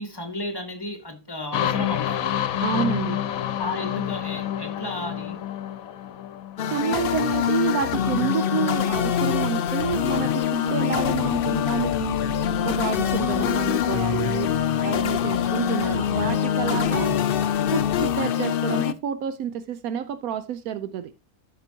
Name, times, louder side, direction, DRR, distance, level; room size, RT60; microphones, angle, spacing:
voice 1, 0.0-2.2 3.6-5.4 16.9-17.2, left 1 dB, 15° left, 1.3 m, -33 dB
sound 1, 1.5-7.2, left 11 dB, 75° left, 1.1 m, -28 dB
voice 2, 2.6-3.2 6.7-12.3 12.6-17.1 17.7-21.1, right 8 dB, 80° right, 1.1 m, -29 dB
sound 2, 6.6-18.9, left 9 dB, 90° left, 0.4 m, -24 dB
sound 3, 11.1-18.2, left 2 dB, 40° right, 5.3 m, -44 dB
13.5 x 5.3 x 2.8 m
omnidirectional pair, 1.5 m